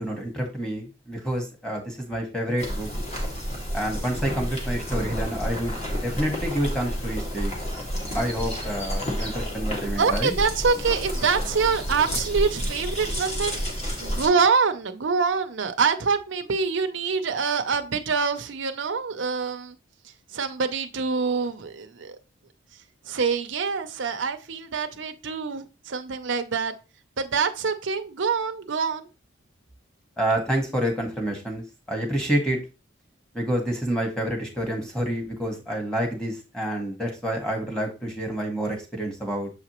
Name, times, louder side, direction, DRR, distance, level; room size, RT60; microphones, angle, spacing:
voice 1, 0.0-2.9 3.7-7.5 8.1-10.3 30.2-32.6 33.3-39.5, right 1 dB, 5° left, 1.5 m, -28 dB
sound 1, 2.6-14.3, equal, 35° left, 1.8 m, -30 dB
voice 2, 10.0-13.6 14.0-19.8 20.3-22.2 23.1-26.7 27.2-29.1, right 5 dB, 70° right, 0.6 m, -25 dB
7.2 x 4.9 x 3.0 m
head